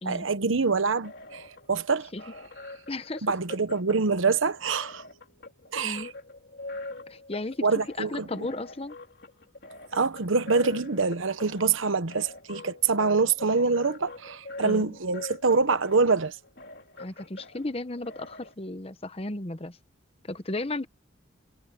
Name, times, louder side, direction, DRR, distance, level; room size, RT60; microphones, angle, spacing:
voice 1, 0.0-2.1 3.2-5.0 5.7-6.1 7.6-8.3 9.9-16.4, right 4 dB, 90° right, 1.0 m, -25 dB
sound 1, 0.8-18.5, left 2 dB, 55° left, 4.0 m, -44 dB
voice 2, 2.9-3.3 5.7-6.1 7.1-7.6 8.0-9.0 14.6-14.9 17.0-19.8 20.3-20.9, left 2 dB, 30° left, 1.0 m, -34 dB
head